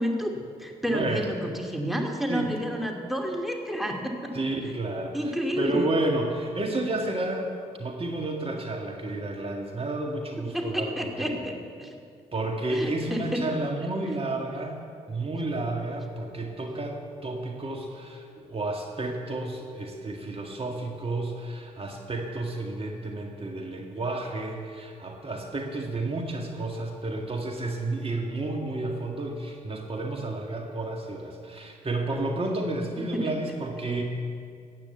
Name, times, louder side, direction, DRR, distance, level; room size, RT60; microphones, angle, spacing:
voice 1, 0.0-4.3 5.1-5.9 10.4-11.9 12.7-13.4 33.1-33.3, equal, ahead, 1 dB, 2.6 m, -30 dB
voice 2, 0.9-1.3 2.3-2.5 4.3-7.5 7.8-11.4 12.3-14.8 15.1-34.0, right 2 dB, 30° right, 1 dB, 2.0 m, -31 dB
14.0 x 9.1 x 8.3 m, 2.3 s
hypercardioid pair, 45°, 18 cm